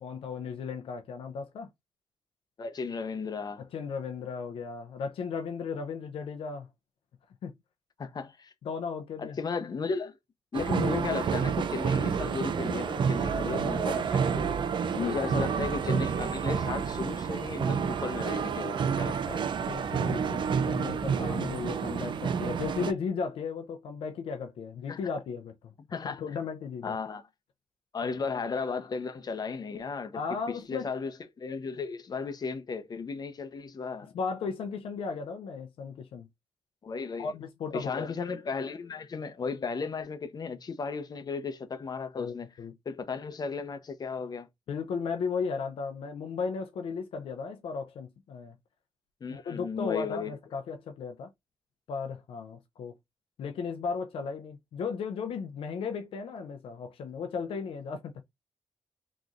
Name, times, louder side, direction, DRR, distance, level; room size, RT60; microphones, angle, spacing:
voice 1, 0.0-1.7 3.6-6.7 7.4-7.5 8.6-9.4 13.5-13.9 14.9-15.3 19.6-25.7 26.0-27.0 30.1-30.9 34.1-36.3 37.2-38.1 42.2-42.8 44.7-48.6 49.3-51.3 51.9-53.0 53.4-58.2, left 5 dB, 85° left, 0.5 m, -35 dB
voice 2, 2.6-3.6 8.0-8.5 9.2-10.2 10.5-14.6 14.9-19.4 24.9-25.0 25.9-26.2 26.8-27.2 27.9-30.2 30.7-31.1 31.4-34.1 36.8-37.3 37.7-42.5 42.9-44.5 49.2-50.4, left 5 dB, 45° left, 0.8 m, -35 dB
sound 1, 10.5-22.9, right 6 dB, 60° right, 0.5 m, -29 dB
3.7 x 3.0 x 2.5 m
cardioid pair, 85°, 9 cm